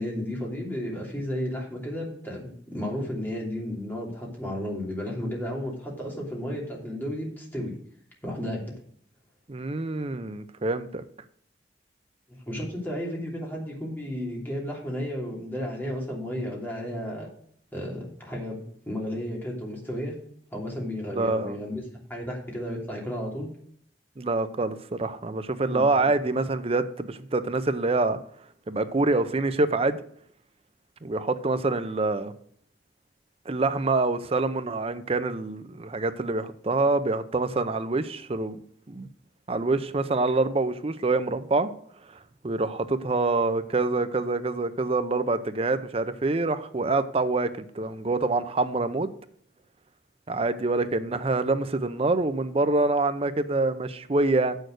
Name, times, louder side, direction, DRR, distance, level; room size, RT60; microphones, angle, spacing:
voice 1, 0.0-7.8 8.2-8.7 12.3-17.3 17.7-20.1 20.5-23.5 25.6-26.1, equal, 10° left, -2 dB, 3.0 m, -33 dB
voice 2, 9.5-11.0 21.1-21.6 24.2-28.2 28.7-30.0 31.0-32.3 33.5-38.6 38.9-39.1 39.5-41.7 42.4-49.1 50.3-54.6, right 3 dB, 35° right, 12 dB, 0.6 m, -26 dB
7.9 x 6.5 x 6.4 m, 0.62 s
head